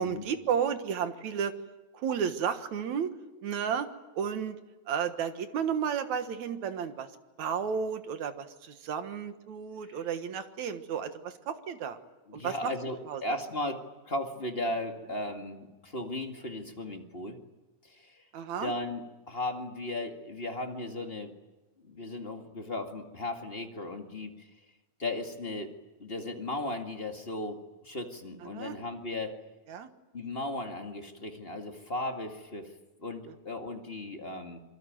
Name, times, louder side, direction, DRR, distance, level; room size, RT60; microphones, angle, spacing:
voice 1, 0.0-1.5 2.0-3.1 3.4-3.9 4.2-4.6 4.9-7.1 7.4-8.5 8.8-12.0 12.3-12.5 13.1-13.2 18.3-18.7 28.5-28.8 29.7-29.9, right 7 dB, 75° right, 8 dB, 2.8 m, -32 dB
voice 2, 12.3-17.4 17.8-18.2 18.6-21.3 21.8-24.5 25.0-25.7 26.0-29.4 30.1-32.7 33.0-34.6, left 2 dB, 20° left, 4 dB, 1.8 m, -36 dB
26.5 x 23.5 x 9.3 m, 1.1 s
omnidirectional pair, 3.4 m